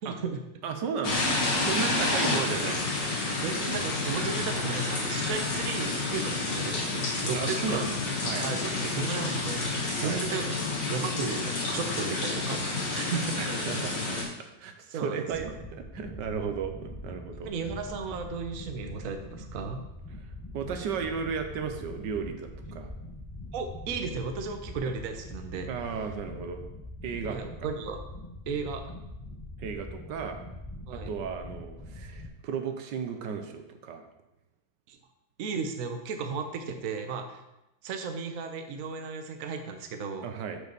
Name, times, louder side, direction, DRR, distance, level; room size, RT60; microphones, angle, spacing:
voice 1, 0.0-0.4 2.0-2.3 3.4-7.9 8.4-10.6 10.8-13.4 14.9-15.5 17.4-19.8 23.5-25.7 27.2-28.0 28.5-28.9 30.9-31.1 34.9-35.0 35.4-37.4 37.8-40.3, right 5 dB, 55° right, 6 dB, 1.1 m, -35 dB
voice 2, 0.6-3.2 7.3-7.9 8.2-8.5 10.0-10.2 13.4-17.5 20.5-22.9 25.6-26.6 27.0-27.7 29.6-30.4 30.9-34.1 40.2-40.6, right 6 dB, 80° right, 6 dB, 1.4 m, -35 dB
sound 1, 1.0-14.2, left 3 dB, 90° left, 2.6 m, -30 dB
sound 2, 15.3-32.3, left 1 dB, 20° left, 0.5 m, -43 dB
6.1 x 5.2 x 6.7 m, 0.92 s
omnidirectional pair, 1.9 m